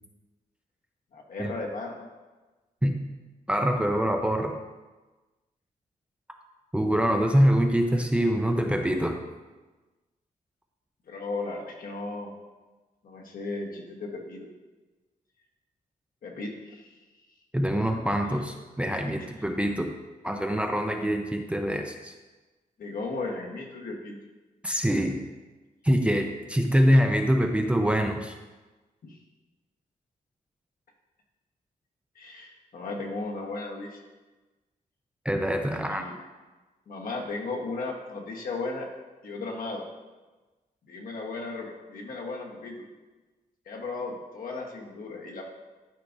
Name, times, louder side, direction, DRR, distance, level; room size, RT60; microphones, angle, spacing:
voice 1, 1.1-2.1 11.1-12.3 13.0-14.5 16.2-17.0 19.1-19.3 22.8-24.2 29.0-29.2 32.1-34.0 35.7-36.1 36.9-38.9 39.2-39.9 40.9-42.8 43.7-45.4, left 3 dB, 70° left, 0 dB, 1.2 m, -35 dB
voice 2, 3.5-4.5 6.7-9.2 17.5-19.9 20.2-22.1 24.6-25.2 25.8-28.3 35.3-36.1, equal, 10° right, 3 dB, 0.4 m, -24 dB
11.5 x 4.6 x 2.6 m, 1.2 s
wide cardioid pair, 175°, 15 cm